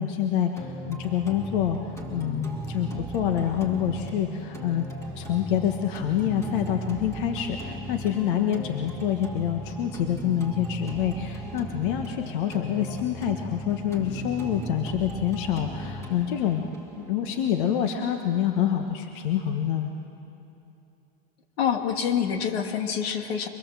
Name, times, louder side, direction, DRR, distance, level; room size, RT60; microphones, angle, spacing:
voice 1, 0.0-1.8 2.1-4.8 5.2-16.6 17.1-19.9, left 10 dB, 55° left, 4 dB, 1.4 m, -27 dB
sound 1, 0.6-18.5, right 1 dB, 10° left, 2.5 m, -37 dB
voice 2, 21.6-23.5, left 8 dB, 85° left, 4 dB, 2.5 m, -26 dB
24.5 x 20.5 x 7.6 m, 2.8 s
supercardioid pair, 170°, 30 cm